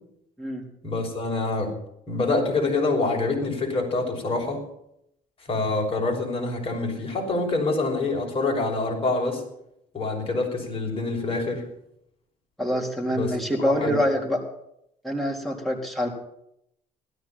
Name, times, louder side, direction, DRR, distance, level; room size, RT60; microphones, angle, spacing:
voice 1, 0.8-1.7 2.1-4.6 5.5-9.4 9.9-11.6 13.1-13.4 13.8-14.0, left 3 dB, 35° left, 1 dB, 5.8 m, -26 dB
voice 2, 12.6-14.4 15.0-16.1, equal, ahead, -1 dB, 3.9 m, -25 dB
16.5 x 13.5 x 5.8 m, 0.76 s
cardioid pair, 110°, 17 cm